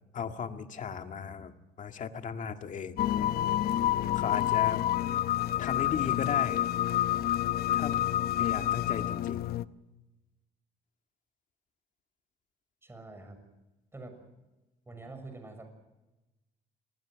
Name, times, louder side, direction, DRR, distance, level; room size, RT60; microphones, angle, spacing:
voice 1, 0.1-3.0 4.1-4.8 5.6-6.6 7.7-8.0 8.4-9.4, left 7 dB, 50° left, 6 dB, 1.9 m, -36 dB
sound 1, 3.0-9.6, left 12 dB, 65° left, 0.8 m, -28 dB
voice 2, 12.8-13.5 13.9-14.3 14.9-15.6, right 3 dB, 15° right, 6 dB, 6.6 m, -46 dB
28.0 x 20.5 x 6.3 m, 1.0 s
cardioid pair, 110°, 17 cm